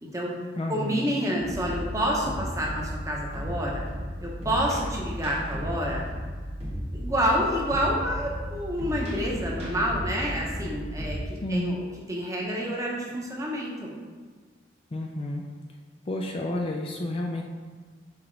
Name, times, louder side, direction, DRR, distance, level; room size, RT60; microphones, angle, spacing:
voice 1, 0.0-0.4 0.7-3.9 4.2-6.0 6.9-13.9, equal, 15° right, -3 dB, 1.0 m, -28 dB
voice 2, 0.6-1.1 11.4-11.8 14.9-15.4 16.1-17.4, left 1 dB, 30° left, 1 dB, 0.4 m, -30 dB
sound 1, 1.4-11.2, equal, 35° right, 1.4 m, -34 dB
6.0 x 4.9 x 3.3 m, 1.4 s
head